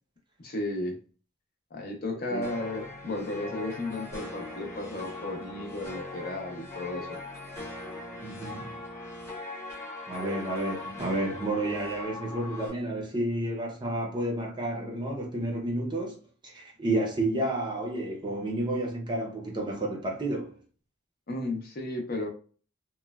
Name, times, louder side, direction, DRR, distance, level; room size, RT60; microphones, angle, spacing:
voice 1, 0.4-1.0 1.7-7.2 21.3-22.3, left 2 dB, 45° left, 0.6 m, -34 dB
sound 1, 2.4-12.7, left 2 dB, 15° left, 0.9 m, -40 dB
voice 2, 8.2-8.7 10.1-16.2 16.4-20.6, right 1 dB, 20° right, 0.5 m, -31 dB
3.1 x 2.1 x 2.2 m
head